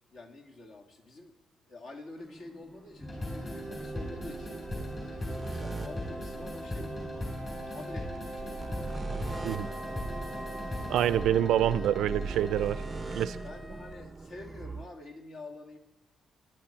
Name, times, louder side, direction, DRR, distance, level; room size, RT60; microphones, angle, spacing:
voice 1, 0.1-1.4 1.7-6.9 7.6-9.9 10.3-11.0 13.4-15.8, left 2 dB, 50° left, 2 dB, 2.1 m, -48 dB
sound 1, 2.2-14.8, right 3 dB, 15° right, 0.6 m, -41 dB
sound 2, 3.0-13.4, equal, 20° left, 4.8 m, -38 dB
Wind instrument woodwind instrument, 9.3-14.1, left 1 dB, 5° left, 0.9 m, -50 dB
voice 2, 10.9-12.8 13.1-13.4, right 11 dB, 80° right, 16 dB, 0.5 m, -26 dB
19.0 x 10.5 x 4.4 m, 1.0 s
cardioid pair, 170°, 0 cm